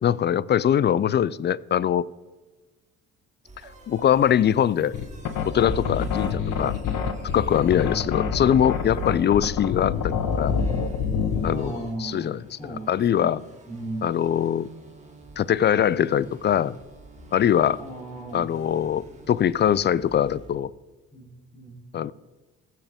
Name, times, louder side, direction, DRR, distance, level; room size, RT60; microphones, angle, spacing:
voice 1, 0.0-2.1 3.9-5.0 5.5-6.7 7.3-10.6 11.4-13.4 14.0-14.7 15.4-16.8 17.3-17.8 18.3-20.7 21.9-22.1, left 9 dB, 30° left, 20 dB, 0.4 m, -22 dB
sound 1, 3.4-20.6, right 2 dB, 20° right, 2.3 m, -47 dB
sound 2, 4.9-11.6, left 6 dB, 65° left, 1.2 m, -26 dB
voice 2, 11.4-13.3 13.7-14.1 17.8-18.5 21.1-21.8, right 2 dB, 10° left, 0 dB, 3.4 m, -37 dB
15.0 x 7.4 x 3.6 m, 1.2 s
supercardioid pair, 65°, 34 cm